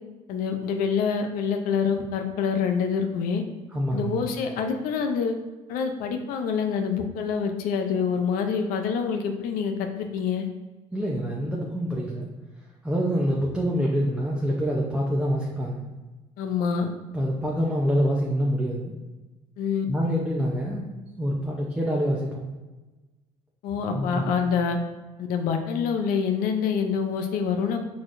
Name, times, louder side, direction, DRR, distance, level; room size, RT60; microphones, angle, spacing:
voice 1, 0.3-3.4 3.9-5.3 5.7-10.5 16.4-16.9 19.6-19.9 23.6-24.8 25.2-27.8, left 6 dB, 80° left, 5 dB, 0.5 m, -26 dB
voice 2, 3.7-4.2 10.9-12.3 12.8-15.8 17.1-18.9 19.9-20.9 21.2-22.5 23.9-24.3, equal, 5° right, -4 dB, 0.7 m, -26 dB
4.5 x 4.1 x 2.5 m, 1.2 s
cardioid pair, 100°, 14 cm